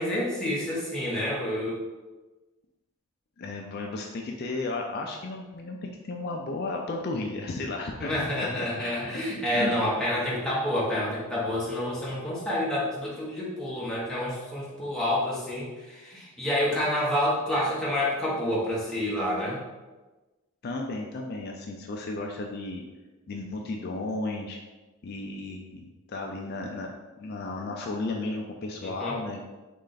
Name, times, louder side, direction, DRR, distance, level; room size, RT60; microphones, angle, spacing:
voice 1, 0.0-1.8 8.0-19.6 28.8-29.2, left 1 dB, 5° left, -7 dB, 1.0 m, -28 dB
voice 2, 3.4-8.2 8.6-9.2 9.5-9.9 20.6-22.8 23.3-24.6 25.0-29.4, left 2 dB, 50° left, 1 dB, 0.4 m, -34 dB
3.8 x 3.2 x 3.9 m, 1.2 s
head